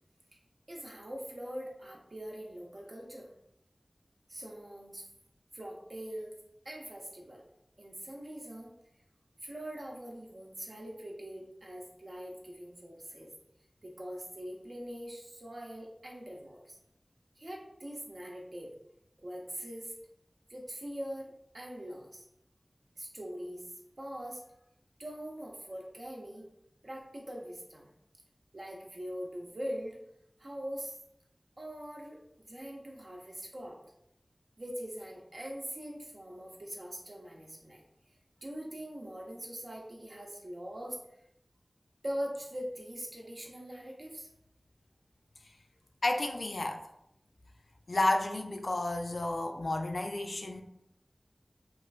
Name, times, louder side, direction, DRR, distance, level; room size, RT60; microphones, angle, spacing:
voice 1, 0.7-3.3 4.3-5.1 5.5-6.3 6.6-7.4 7.8-8.7 9.4-13.3 13.8-16.8 17.4-18.7 19.2-19.9 20.5-22.3 23.0-23.7 24.0-24.4 25.0-26.5 26.8-27.9 28.5-30.0 30.4-31.0 31.6-33.8 34.6-37.8 38.4-41.0 42.0-44.3, equal, 65° right, -2 dB, 0.7 m, -42 dB
voice 2, 46.0-46.8 47.9-50.6, left 2 dB, 75° left, 4 dB, 0.3 m, -31 dB
3.0 x 2.4 x 2.4 m, 0.78 s
wide cardioid pair, 50°, 0 cm